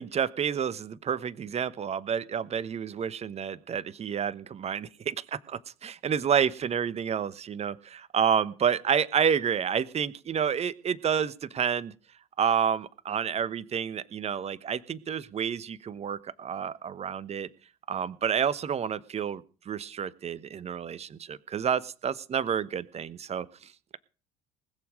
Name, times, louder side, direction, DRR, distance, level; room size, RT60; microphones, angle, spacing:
voice 1, 0.0-11.9 12.4-17.5 17.9-24.0, right 7 dB, 35° right, 18 dB, 1.0 m, -29 dB
20.0 x 7.2 x 6.3 m, 0.38 s
figure-of-eight pair, 60°, 19 cm